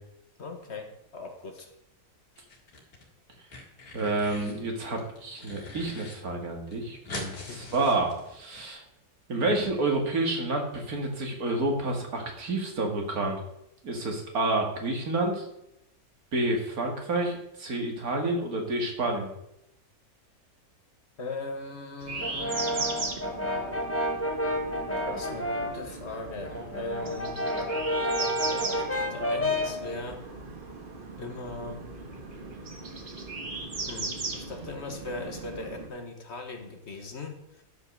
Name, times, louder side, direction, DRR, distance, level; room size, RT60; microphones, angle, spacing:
voice 1, 0.4-1.7 7.5-7.9 21.2-22.8 25.1-27.4 28.0-30.2 31.2-31.8 33.9-37.6, left 3 dB, 50° left, 5 dB, 1.5 m, -39 dB
sound 1, 2.4-3.0 3.3-4.6 5.0-6.2 6.4-6.5 6.7-8.6, left 2 dB, 85° left, 2.6 m, -42 dB
voice 2, 3.9-8.8 9.3-13.4 13.8-15.5 16.3-19.3, right 2 dB, 80° right, 2 dB, 2.4 m, -29 dB
sound 2, 22.0-35.9, right 3 dB, 35° right, 1.4 m, -38 dB
Brass instrument, 22.2-25.8 26.2-29.8, equal, 10° left, 1.2 m, -30 dB
10.5 x 5.5 x 6.7 m, 0.82 s
omnidirectional pair, 1.5 m